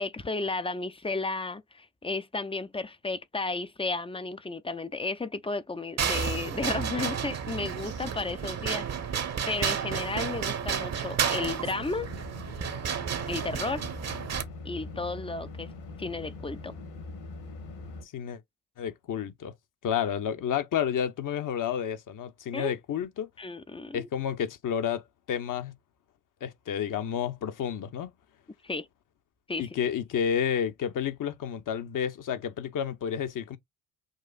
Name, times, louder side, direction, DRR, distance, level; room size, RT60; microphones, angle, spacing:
voice 1, 0.0-8.9 9.5-12.1 13.3-13.8 14.6-15.7 16.0-16.7 22.5-22.7 23.4-24.1 28.6-28.9 29.5-29.7, left 3 dB, 15° left, 0.5 m, -33 dB
sound 1, 6.0-14.4, right 7 dB, 35° right, 0.9 m, -31 dB
sound 2, 11.8-18.0, left 3 dB, 65° left, 1.9 m, -42 dB
voice 2, 18.0-18.4 18.8-19.5 19.8-23.3 23.9-25.7 26.4-28.1 29.6-33.6, left 8 dB, 45° left, 0.9 m, -30 dB
6.4 x 2.5 x 2.4 m
hypercardioid pair, 55°, 43 cm